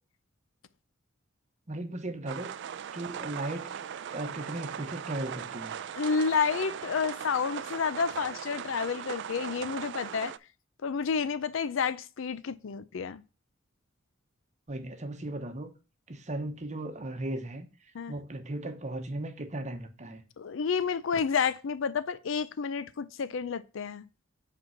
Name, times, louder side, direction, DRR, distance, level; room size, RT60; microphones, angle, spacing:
voice 1, 1.7-2.5 2.9-3.7 4.1-5.8 14.7-15.7 16.1-17.7 18.1-20.2, right 1 dB, 35° right, 1.0 m, -36 dB
sound 1, 2.3-10.4, right 8 dB, 60° right, 0.4 m, -39 dB
voice 2, 5.9-10.3 10.8-13.2 17.9-18.1 20.4-24.1, left 6 dB, 70° left, 0.5 m, -30 dB
5.3 x 4.4 x 5.7 m
head